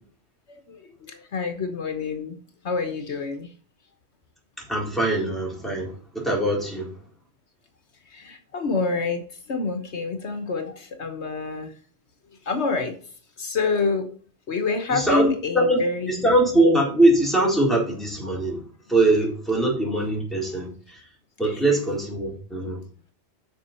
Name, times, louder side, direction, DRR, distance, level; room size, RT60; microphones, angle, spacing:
voice 1, 0.5-2.4 2.6-3.5 8.1-11.7 12.4-13.0 13.4-14.1 14.5-16.3 21.4-21.6, left 4 dB, 75° left, 7 dB, 1.4 m, -27 dB
voice 2, 4.6-7.0 14.9-15.3 15.5-18.6 18.9-21.1 21.4-22.8, right 1 dB, ahead, -3 dB, 4.2 m, -22 dB
9.3 x 6.4 x 4.4 m, 0.44 s
omnidirectional pair, 1.2 m